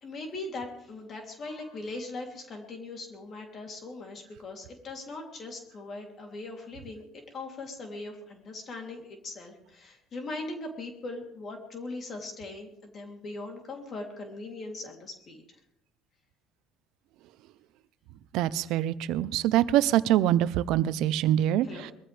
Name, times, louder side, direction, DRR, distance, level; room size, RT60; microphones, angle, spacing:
voice 1, 0.0-7.0 7.3-15.4 21.6-21.9, left 2 dB, 40° left, 2 dB, 3.2 m, -40 dB
voice 2, 18.3-21.9, right 12 dB, 75° right, 16 dB, 0.8 m, -24 dB
22.5 x 14.5 x 3.5 m, 0.77 s
cardioid pair, 120°, 0 cm